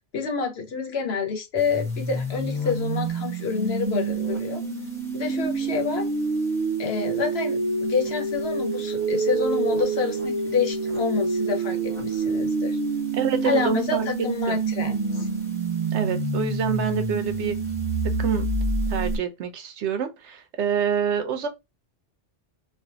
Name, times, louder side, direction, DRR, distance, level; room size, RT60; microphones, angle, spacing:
voice 1, 0.0-4.6 5.1-6.1 6.8-12.8 13.4-15.3, left 5 dB, 65° left, 1.1 m, -28 dB
sound 1, 1.6-19.2, right 3 dB, 5° left, 0.9 m, -27 dB
voice 2, 13.1-14.1 14.5-14.6 15.9-17.6 18.2-18.5 18.9-21.5, right 6 dB, 85° right, 1.0 m, -27 dB
3.3 x 2.3 x 2.7 m
omnidirectional pair, 1.1 m